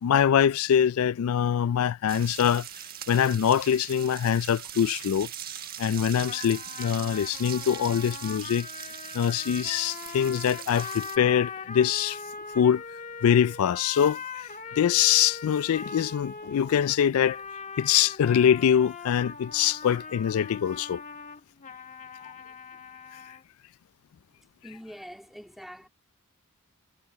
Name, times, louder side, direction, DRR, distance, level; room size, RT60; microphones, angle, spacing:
voice 1, 0.0-2.7 3.1-5.3 5.8-8.7 9.1-12.2 12.5-12.8 13.2-14.5 14.8-17.4 17.8-21.0, left 8 dB, 70° left, 0.3 m, -24 dB
sound 1, 2.1-11.2, right 10 dB, 45° right, 1.4 m, -41 dB
sound 2, 6.3-23.4, left 5 dB, 35° left, 1.6 m, -41 dB
voice 2, 24.6-25.9, equal, ahead, 2.5 m, -44 dB
head